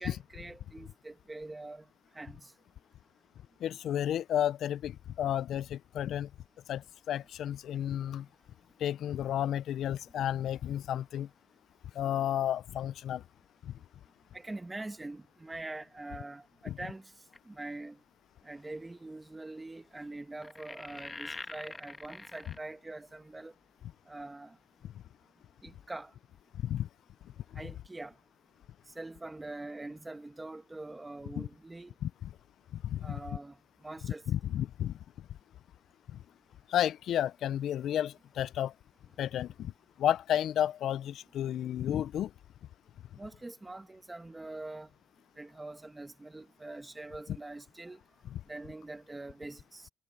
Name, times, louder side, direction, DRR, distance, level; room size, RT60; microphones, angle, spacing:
voice 1, 0.0-1.9 2.1-2.5 14.3-17.1 17.4-18.0 18.4-23.5 24.1-24.6 25.6-26.1 27.5-28.1 28.9-31.9 33.0-33.6 33.8-34.5 43.2-44.9 45.4-48.0 48.5-49.9, right 2 dB, 15° right, 1.7 m, -44 dB
voice 2, 3.6-6.3 6.7-8.3 8.8-11.3 12.0-13.2 13.7-13.8 16.7-16.8 26.6-26.9 31.4-31.5 32.0-32.1 32.8-33.2 34.3-34.9 36.7-38.7 39.2-39.7 40.0-42.3, left 11 dB, 75° left, 0.3 m, -32 dB
sound 1, 17.3-17.6 18.6-18.7 20.4-22.6, left 3 dB, 25° left, 1.2 m, -44 dB
cardioid pair, 90°, 0 cm